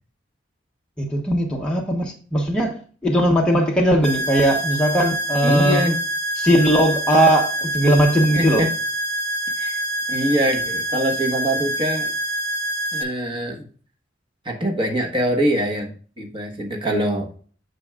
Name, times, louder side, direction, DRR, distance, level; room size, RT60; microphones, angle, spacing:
voice 1, 1.0-2.7 3.0-5.8 6.4-8.6, right 1 dB, 5° left, 1.0 m, -18 dB
sound 1, 4.0-13.0, right 1 dB, 75° right, 1.8 m, -26 dB
voice 2, 5.4-6.0 8.3-8.7 9.6-9.8 10.1-12.1 12.9-13.6 14.4-17.3, equal, 25° right, 1.3 m, -23 dB
8.9 x 6.1 x 2.4 m
head